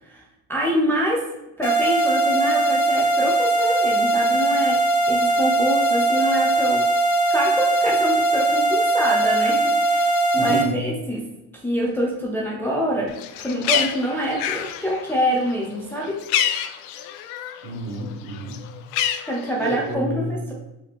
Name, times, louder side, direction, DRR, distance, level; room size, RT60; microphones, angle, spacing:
voice 1, 0.5-1.2 1.6-6.9 7.3-11.2 11.6-16.2 19.3-20.2, equal, 5° left, -3 dB, 0.5 m, -25 dB
sound 1, 1.6-10.6, right 2 dB, 35° left, 0.8 m, -20 dB
voice 2, 10.4-10.9 17.6-18.7 19.6-20.5, right 2 dB, 60° right, 0 dB, 1.5 m, -29 dB
Bird, 13.1-17.7 18.0-19.9, left 10 dB, 70° left, 0.6 m, -27 dB
4.9 x 2.8 x 3.5 m, 0.97 s
supercardioid pair, 125°, 47 cm